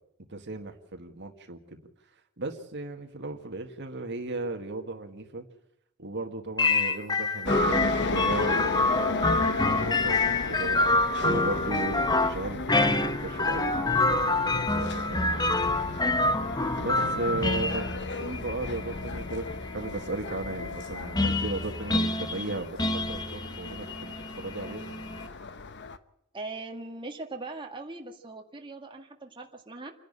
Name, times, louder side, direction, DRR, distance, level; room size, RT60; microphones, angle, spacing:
voice 1, 0.3-1.8 2.4-5.5 6.0-9.3 9.5-16.0 16.8-24.9, right 2 dB, 55° right, 5 dB, 1.9 m, -36 dB
sound 1, 6.6-25.3, left 2 dB, 20° left, 1.1 m, -27 dB
sound 2, 7.5-26.0, left 3 dB, 55° left, 1.1 m, -35 dB
voice 2, 17.5-18.3 26.3-29.9, right 3 dB, 25° right, 2 dB, 2.0 m, -41 dB
28.0 x 11.0 x 8.9 m, 0.81 s
head